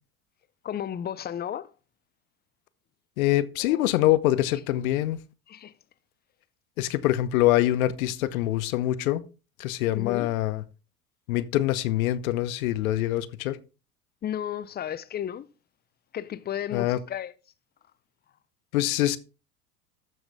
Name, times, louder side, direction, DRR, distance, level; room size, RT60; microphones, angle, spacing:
voice 1, 0.6-1.7 3.6-3.9 5.5-5.7 9.9-10.3 14.2-15.5 16.1-17.3, left 10 dB, 20° left, 0.6 m, -33 dB
voice 2, 3.2-5.2 6.8-9.2 9.6-10.6 11.3-13.6 16.7-17.0 18.7-19.2, left 15 dB, 65° left, 1.0 m, -24 dB
13.5 x 6.3 x 3.5 m
hypercardioid pair, 80°, 45 cm